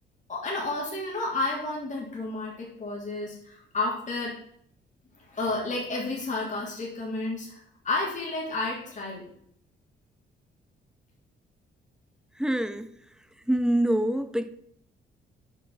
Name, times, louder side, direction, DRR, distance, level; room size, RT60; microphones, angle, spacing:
voice 1, 0.3-4.3 5.3-7.6 7.8-9.2, left 2 dB, 40° left, 3.1 m, -31 dB
voice 2, 12.4-13.0 13.5-14.5, right 1 dB, 5° right, 0.7 m, -25 dB
7.2 x 5.5 x 6.3 m
cardioid pair, 90°, 20 cm